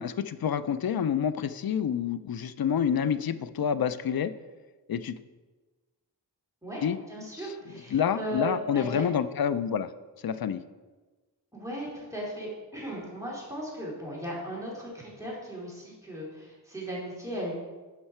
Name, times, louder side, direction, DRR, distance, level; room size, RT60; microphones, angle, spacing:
voice 1, 0.0-4.3 4.9-5.2 6.8-7.0 7.9-9.9 10.2-10.6, left 8 dB, 55° left, 13 dB, 0.5 m, -28 dB
voice 2, 6.6-9.0 11.5-17.6, equal, 5° right, -5 dB, 3.2 m, -37 dB
10.5 x 5.6 x 4.4 m, 1.3 s
wide cardioid pair, 100°, 43 cm